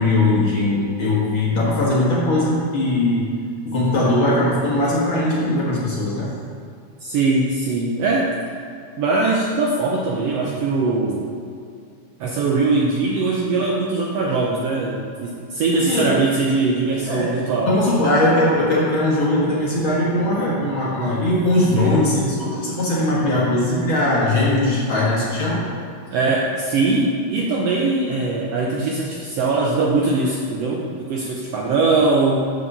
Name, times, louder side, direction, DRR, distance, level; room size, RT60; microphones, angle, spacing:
voice 1, 0.0-6.3 15.8-16.1 17.1-17.4 17.7-25.6, left 1 dB, 50° left, -6 dB, 1.9 m, -20 dB
voice 2, 7.0-8.3 9.0-11.3 12.2-17.8 21.7-22.1 26.1-32.5, right 3 dB, 75° right, -2 dB, 1.5 m, -21 dB
7.1 x 4.9 x 6.7 m, 2.4 s
omnidirectional pair, 3.5 m